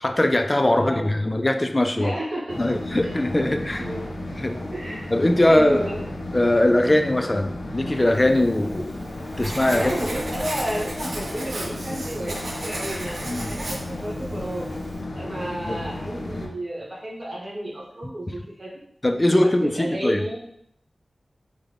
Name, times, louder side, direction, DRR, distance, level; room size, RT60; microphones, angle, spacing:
voice 1, 0.0-2.1 2.6-3.8 4.4-4.6 5.1-5.9 6.3-8.9 9.4-9.9 13.3-13.5 15.7-15.8 18.3-18.4 19.0-20.2, left 1 dB, 25° left, 6 dB, 0.3 m, -21 dB
voice 2, 0.7-1.2 2.0-2.6 3.0-4.0 4.7-5.1 5.4-6.0 9.7-14.7 15.1-18.8 19.3-20.4, right 1 dB, 55° right, -5 dB, 1.1 m, -31 dB
sound 1, 2.5-16.5, left 1 dB, 90° left, 0.5 m, -34 dB
Writing, 8.3-15.0, right 1 dB, 85° right, 0.6 m, -35 dB
3.5 x 2.1 x 3.3 m, 0.73 s
wide cardioid pair, 80°, 0 cm